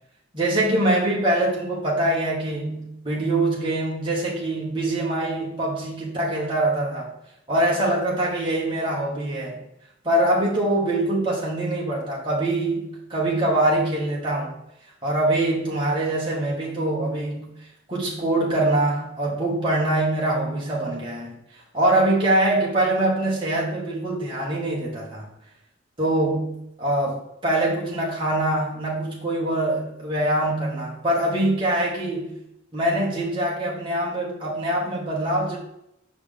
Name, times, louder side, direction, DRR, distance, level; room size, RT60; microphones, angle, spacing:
voice 1, 0.3-7.1 7.5-9.6 10.0-14.5 15.0-17.5 17.9-21.4 21.7-25.3 26.0-32.4 32.7-35.6, right 1 dB, 25° right, -4 dB, 2.1 m, -24 dB
6.6 x 4.8 x 3.8 m, 0.80 s
head